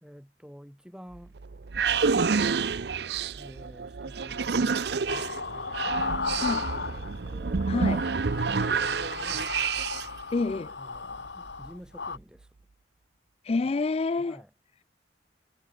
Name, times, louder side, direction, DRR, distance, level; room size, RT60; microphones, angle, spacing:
voice 1, 0.0-1.3 3.4-8.0 8.5-9.5 10.8-12.5 14.2-14.5, equal, 5° right, 3.0 m, -49 dB
sound 1, 1.1-10.2, right 5 dB, 65° right, 0.6 m, -28 dB
sound 2, 5.1-7.3 7.6-12.2, left 4 dB, 80° left, 1.5 m, -35 dB
voice 2, 6.3-6.7 7.7-8.1 10.3-10.7 13.4-14.4, left 3 dB, 35° left, 0.4 m, -28 dB
head